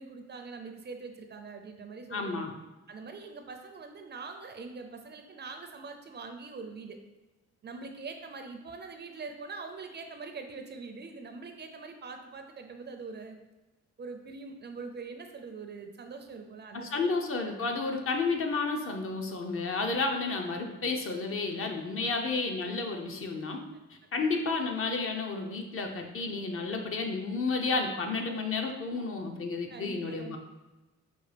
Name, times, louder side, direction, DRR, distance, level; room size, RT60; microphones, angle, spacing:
voice 1, 0.0-2.5 2.9-7.0 7.6-13.4 14.0-17.1 18.8-19.1 21.6-21.7 22.0-22.4 24.1-24.3 28.9-29.0 29.3-29.4 29.7-30.4, right 4 dB, 35° right, 5 dB, 0.4 m, -43 dB
voice 2, 2.1-2.5 16.7-23.6 23.9-30.4, left 3 dB, 45° left, 3 dB, 0.6 m, -31 dB
5.2 x 2.3 x 3.3 m, 1.1 s
cardioid pair, 90°, 30 cm